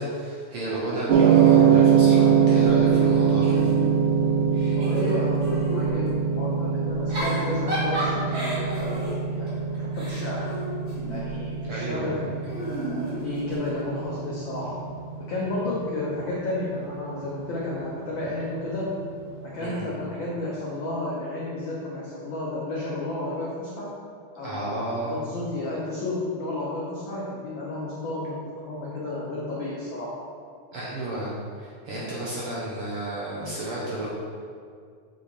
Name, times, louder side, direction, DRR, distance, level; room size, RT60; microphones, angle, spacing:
voice 1, 0.0-3.6 11.6-12.2 19.6-19.9 24.4-25.1 30.7-34.1, right 1 dB, 65° right, -6 dB, 1.5 m, -31 dB
sound 1, 1.1-19.3, right 7 dB, 80° right, 2.0 m, -23 dB
Giggle / Chuckle chortle, 2.5-4.1 4.5-5.9 6.9-11.4 12.4-13.8, right 1 dB, 35° right, 1.1 m, -33 dB
voice 2, 4.7-10.4 11.1-14.7 15.3-18.9 19.5-23.9 24.3-30.1, left 2 dB, 75° left, -6 dB, 1.1 m, -32 dB
6.9 x 4.9 x 4.2 m, 2.2 s
omnidirectional pair, 3.5 m